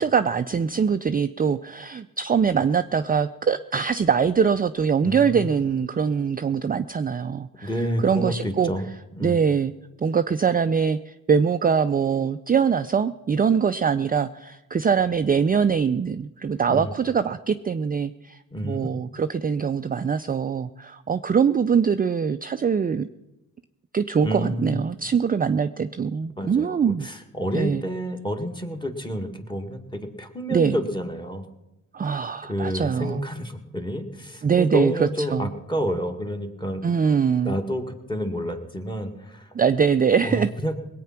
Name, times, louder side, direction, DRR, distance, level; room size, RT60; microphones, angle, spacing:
voice 1, 0.0-8.7 9.2-9.7 10.0-23.1 23.9-27.1 27.5-27.8 30.5-30.8 31.9-33.2 34.4-35.5 36.8-37.6 39.5-40.5, right 6 dB, 25° right, 10 dB, 0.4 m, -23 dB
voice 2, 5.0-5.5 7.6-8.8 9.1-9.4 16.7-16.9 18.5-18.9 24.2-24.8 26.4-31.5 32.5-36.9 37.5-39.5 40.2-40.8, equal, 15° left, 7 dB, 1.9 m, -29 dB
19.0 x 8.6 x 5.9 m, 0.96 s
cardioid pair, 65°, 35 cm